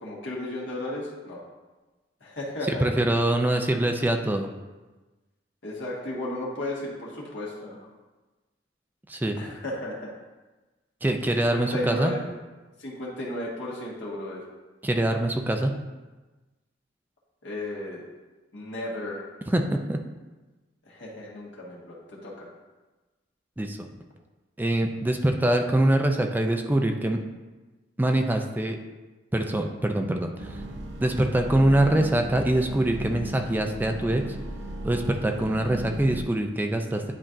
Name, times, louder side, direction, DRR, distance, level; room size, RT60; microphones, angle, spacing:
voice 1, 0.0-1.4 2.2-3.0 5.6-7.9 9.4-10.1 11.3-12.3 12.8-14.4 17.4-18.0 18.5-19.2 20.8-22.5, left 1 dB, 85° left, -5 dB, 1.7 m, -34 dB
voice 2, 2.7-4.5 9.1-9.4 11.0-12.1 14.8-15.7 19.5-20.0 23.6-23.9 24.6-27.2 28.0-28.8 29.3-30.6 31.0-34.4 34.8-37.1, right 1 dB, 10° right, 4 dB, 0.4 m, -24 dB
sound 1, 30.4-36.2, right 1 dB, 70° right, 0.6 m, -36 dB
10.0 x 4.3 x 2.6 m, 1.2 s
head